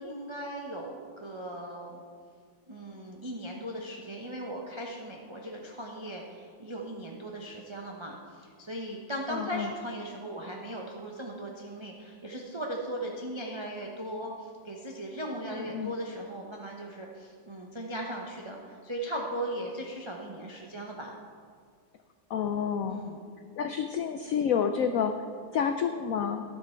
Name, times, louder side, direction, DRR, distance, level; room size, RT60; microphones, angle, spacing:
voice 1, 0.0-2.0 2.7-21.1 22.9-23.2, right 1 dB, 25° right, -1 dB, 0.6 m, -38 dB
voice 2, 9.3-9.7 15.5-15.9 22.3-23.0 23.6-25.1 25.5-26.4, left 7 dB, 90° left, 7 dB, 0.7 m, -29 dB
12.5 x 10.5 x 4.5 m, 2.1 s
omnidirectional pair, 2.1 m